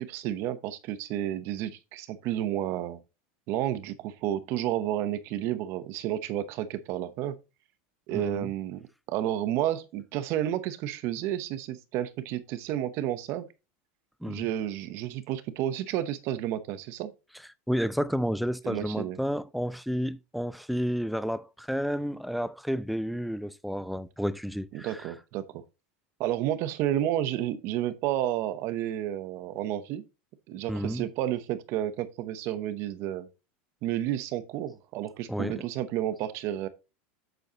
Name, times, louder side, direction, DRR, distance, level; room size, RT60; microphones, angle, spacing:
voice 1, 0.0-3.0 3.5-7.4 8.1-13.5 14.2-17.1 18.6-19.2 24.7-25.6 26.2-30.0 30.5-33.3 33.8-36.7, right 12 dB, 40° right, 0.8 m, -31 dB
voice 2, 8.1-8.5 14.2-14.5 17.7-25.1 30.7-31.0 35.3-35.6, equal, ahead, 0.3 m, -31 dB
7.9 x 7.1 x 2.9 m
supercardioid pair, 165°, 7 cm